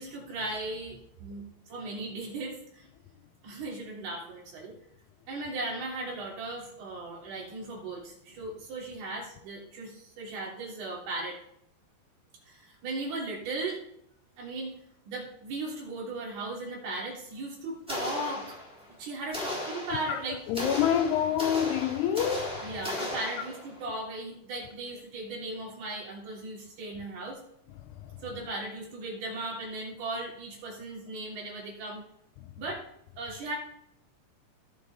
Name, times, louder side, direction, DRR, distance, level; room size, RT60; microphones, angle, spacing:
voice 1, 0.0-1.4 1.7-2.9 3.4-4.7 5.3-11.4 12.4-13.8 14.4-14.7 15.0-18.6 19.0-20.4 22.6-27.4 28.2-32.1 32.6-32.8 33.2-33.6, right 2 dB, 60° right, 5.1 m, -37 dB
sound 1, 17.9-18.9 19.3-23.8, left 1 dB, ahead, 2.2 m, -36 dB
voice 2, 20.5-22.5 22.9-23.1, left 9 dB, 85° left, 2.5 m, -27 dB
18.0 x 6.5 x 3.5 m
omnidirectional pair, 5.2 m